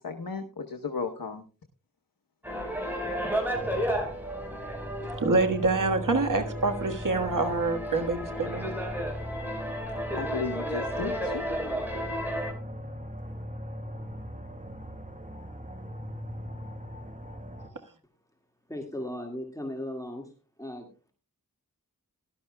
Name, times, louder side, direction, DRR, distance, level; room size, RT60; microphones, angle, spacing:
voice 1, 0.0-1.4 10.2-11.4, left 4 dB, 85° left, 4 dB, 1.0 m, -34 dB
sound 1, 2.4-12.5, equal, 5° right, 4.6 m, -33 dB
sound 2, 3.5-17.7, equal, 20° right, 1.2 m, -39 dB
voice 2, 5.2-8.7, right 3 dB, 65° right, 7 dB, 1.5 m, -26 dB
voice 3, 18.7-20.3 20.6-21.1, left 1 dB, 10° left, 3 dB, 1.9 m, -37 dB
17.5 x 12.0 x 2.2 m, 0.35 s
wide cardioid pair, 45°, 34 cm